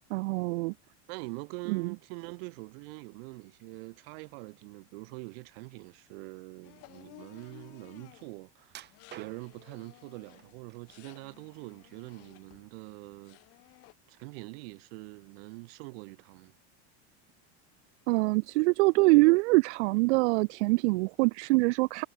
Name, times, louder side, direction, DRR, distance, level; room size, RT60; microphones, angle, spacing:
voice 1, 0.1-0.7 1.7-1.9 18.1-22.1, right 25 dB, 90° right, 0.7 m, -24 dB
voice 2, 1.1-8.8 9.2-13.4 14.1-16.5, right 29 dB, 65° right, 3.6 m, -44 dB
sound 1, 6.6-8.4 8.8-13.0 13.2-13.9, left 22 dB, 45° left, 5.5 m, -56 dB
sound 2, 8.7-9.7 10.4-11.1 11.5-12.4 12.7-12.9 13.5-13.6, right 13 dB, 30° right, 3.0 m, -50 dB
cardioid pair, 175°, 34 cm